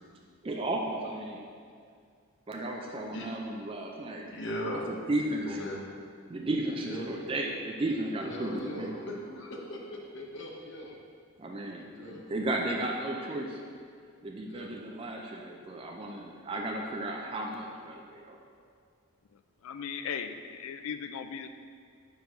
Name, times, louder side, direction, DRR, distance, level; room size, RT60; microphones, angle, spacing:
voice 1, 0.4-1.5 2.5-4.3 4.9-5.6 6.3-8.9 11.4-13.6 14.2-18.4, right 1 dB, 25° right, 0 dB, 0.3 m, -34 dB
voice 2, 4.3-4.9 5.4-5.9 6.9-7.2 8.3-10.9 11.9-12.3 14.5-14.7, left 1 dB, 55° left, -1 dB, 0.8 m, -39 dB
voice 3, 19.6-21.5, left 7 dB, 70° left, 8 dB, 0.3 m, -37 dB
4.7 x 3.9 x 5.5 m, 2.2 s
head